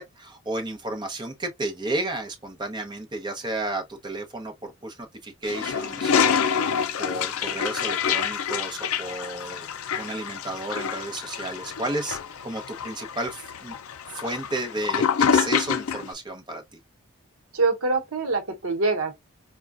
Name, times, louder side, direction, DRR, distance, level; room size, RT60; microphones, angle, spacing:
voice 1, 0.0-9.7 10.0-12.2 12.4-13.7 14.1-16.8, right 2 dB, 20° right, 0.8 m, -33 dB
Toilet flush, 5.4-16.1, left 7 dB, 80° left, 0.4 m, -27 dB
voice 2, 17.5-19.1, right 3 dB, 75° right, 1.0 m, -24 dB
4.4 x 2.3 x 2.4 m
head